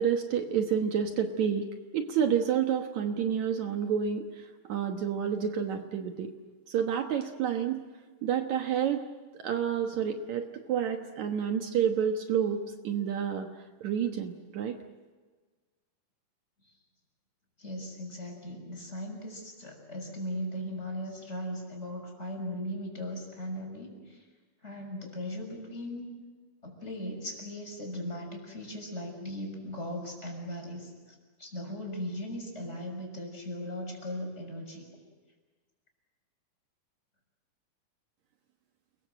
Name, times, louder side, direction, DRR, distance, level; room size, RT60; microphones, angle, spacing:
voice 1, 0.0-1.7 1.9-6.3 6.7-7.8 8.2-9.0 9.3-13.5 13.8-14.8, right 8 dB, 70° right, 5 dB, 2.5 m, -29 dB
voice 2, 17.6-24.2 24.6-26.1 26.6-30.9 31.4-34.9, equal, 20° left, 1 dB, 6.5 m, -38 dB
30.0 x 22.0 x 7.7 m, 1.4 s
omnidirectional pair, 3.6 m